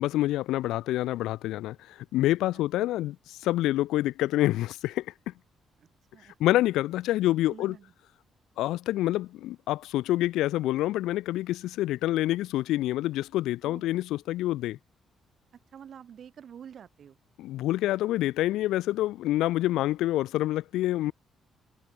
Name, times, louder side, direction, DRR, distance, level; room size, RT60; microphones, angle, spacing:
voice 1, 0.0-5.3 6.4-7.8 8.6-14.8 17.4-21.1, left 15 dB, 90° left, 0.4 m, -27 dB
voice 2, 5.8-6.4 7.5-7.9 13.6-13.8 15.7-17.2, right 8 dB, 60° right, 1.5 m, -48 dB
cardioid pair, 90°, 0 cm